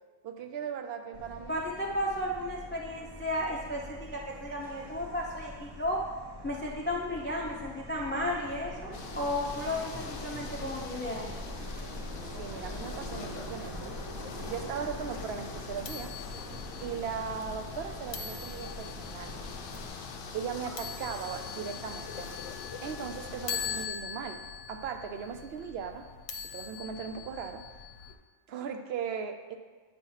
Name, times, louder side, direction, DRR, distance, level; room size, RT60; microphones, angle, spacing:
voice 1, 0.2-1.6 12.4-13.9 14.5-16.1 16.8-19.4 20.3-22.4 22.8-24.4 24.7-26.1 26.4-27.6 28.0-28.1 28.5-29.6, right 7 dB, 65° right, 7 dB, 0.7 m, -38 dB
Subway metro underground, 1.1-19.9, equal, 25° right, 0.6 m, -44 dB
voice 2, 1.5-6.0 6.4-8.9 9.2-11.3, left 1 dB, 15° left, -2 dB, 0.4 m, -33 dB
sound 1, 8.9-23.9, left 5 dB, 55° left, 0.6 m, -44 dB
sound 2, 12.8-28.1, left 7 dB, 75° left, 0.9 m, -43 dB
8.8 x 2.9 x 5.5 m, 1.4 s
omnidirectional pair, 1.3 m